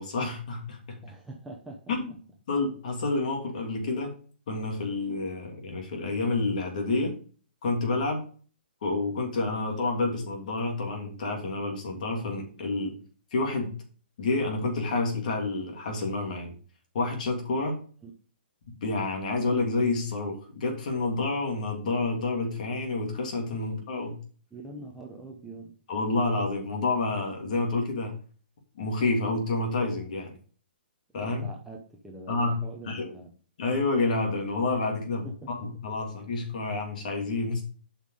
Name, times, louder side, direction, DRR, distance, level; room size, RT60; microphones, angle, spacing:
voice 1, 0.0-1.0 1.9-2.1 2.5-4.1 4.5-7.1 7.6-8.2 8.8-12.9 13.3-13.7 14.2-16.5 16.9-17.8 18.8-24.2 25.9-28.1 28.8-30.4 31.1-31.5 32.3-32.6 32.8-33.1 33.6-37.6, left 3 dB, 45° left, 2 dB, 2.8 m, -29 dB
voice 2, 1.0-1.9 18.0-18.1 24.5-25.7 31.1-33.3 35.2-35.5, right 2 dB, 5° right, -1 dB, 0.8 m, -43 dB
8.1 x 5.7 x 4.8 m, 0.40 s
hypercardioid pair, 170°, 6 cm